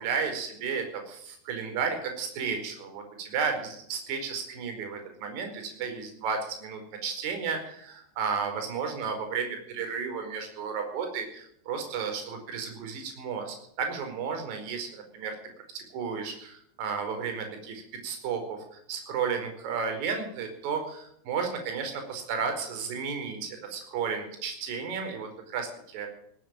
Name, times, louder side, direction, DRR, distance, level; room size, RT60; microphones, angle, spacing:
voice 1, 0.0-15.3 15.7-26.1, right 6 dB, 45° right, 5 dB, 4.5 m, -33 dB
18.5 x 8.2 x 9.0 m, 0.70 s
figure-of-eight pair, 90°, 0 cm